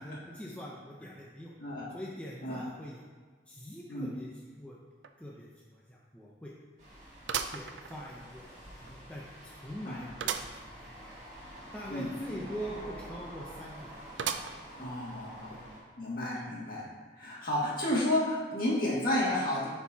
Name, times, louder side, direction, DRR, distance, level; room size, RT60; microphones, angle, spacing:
voice 1, 0.0-1.5 1.9-3.0 3.5-4.8 5.2-6.5 7.5-11.2 11.7-13.9 14.8-15.0 15.5-15.6, equal, 5° left, -4 dB, 0.6 m, -44 dB
voice 2, 1.6-1.9 2.4-2.6 3.9-4.2 9.9-10.1 11.9-12.4 14.8-15.5 16.0-16.9 17.1-19.7, left 1 dB, 50° left, -6 dB, 2.0 m, -31 dB
sound 1, 5.0-5.1 5.6-5.7 7.3-8.4 8.9-9.0 10.2-10.6 11.0-11.1 11.3-11.4 14.2-14.8 15.4-15.5 16.5-16.6, right 7 dB, 80° right, 0.4 m, -35 dB
sound 2, 6.8-15.8, equal, 40° right, 1.7 m, -48 dB
11.5 x 4.5 x 2.8 m, 1.4 s
head